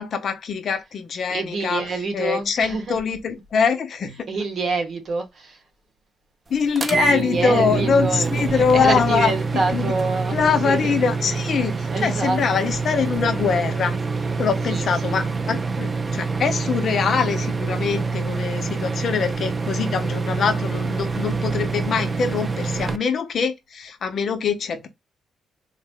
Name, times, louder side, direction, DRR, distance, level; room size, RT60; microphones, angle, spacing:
voice 1, 0.0-1.8 2.1-4.2 6.5-9.9 10.3-14.0 14.4-24.9, left 6 dB, 45° left, 0.6 m, -23 dB
voice 2, 1.3-3.0 4.3-5.6 7.1-10.9 11.9-12.4 14.7-15.3, right 3 dB, 45° right, 1.0 m, -27 dB
sound 1, 6.8-23.0, right 4 dB, 25° right, 0.3 m, -26 dB
4.0 x 2.1 x 3.4 m
cardioid pair, 165°, 0 cm